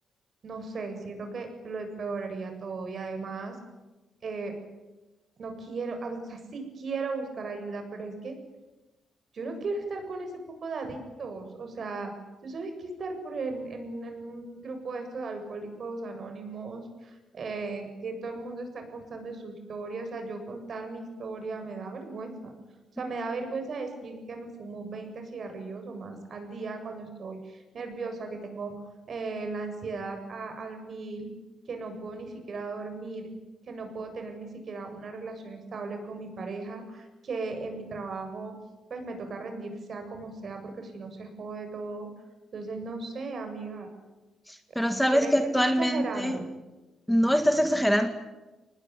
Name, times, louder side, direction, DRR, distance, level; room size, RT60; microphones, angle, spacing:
voice 1, 0.4-3.6 4.2-4.5 5.4-8.3 9.3-10.3 10.6-12.1 12.4-22.5 23.0-28.7 29.1-31.3 31.7-33.3 33.7-38.5 38.9-42.1 42.5-43.9 45.1-46.5, right 3 dB, 55° right, 5 dB, 7.8 m, -36 dB
voice 2, 44.5-46.4 47.1-48.1, equal, ahead, 7 dB, 2.1 m, -24 dB
25.0 x 20.0 x 10.0 m, 1.1 s
cardioid pair, 95°, 0 cm